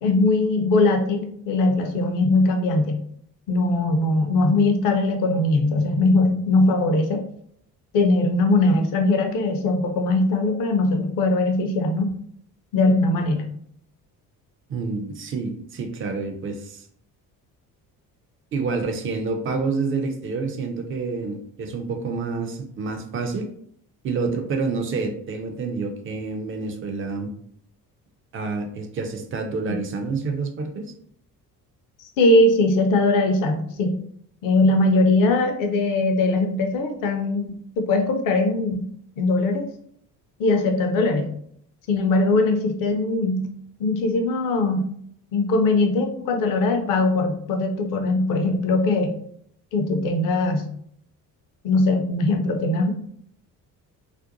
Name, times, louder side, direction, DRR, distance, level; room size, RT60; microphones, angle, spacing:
voice 1, 0.0-3.0 3.5-7.2 7.9-12.1 12.7-13.5 32.0-34.0 34.4-37.5 37.8-38.9 39.2-39.7 40.4-41.3 41.9-43.4 43.8-44.9 45.3-49.1 49.7-50.7 51.6-52.9, left 2 dB, 45° left, 5 dB, 0.5 m, -20 dB
voice 2, 14.7-16.9 18.5-23.5 24.0-27.3 28.3-30.8, right 4 dB, 30° right, 5 dB, 0.4 m, -28 dB
2.5 x 2.1 x 2.6 m, 0.65 s
figure-of-eight pair, 45°, 49 cm